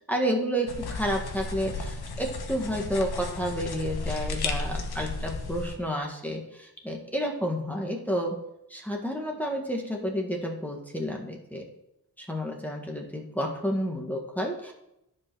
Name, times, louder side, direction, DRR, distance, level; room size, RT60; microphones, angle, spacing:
voice 1, 0.1-8.4 8.7-11.6 12.2-14.7, equal, 5° left, 0 dB, 1.5 m, -30 dB
sound 1, 0.7-5.8, left 3 dB, 85° left, 1.3 m, -34 dB
10.5 x 5.2 x 6.1 m, 0.85 s
wide cardioid pair, 110°, 37 cm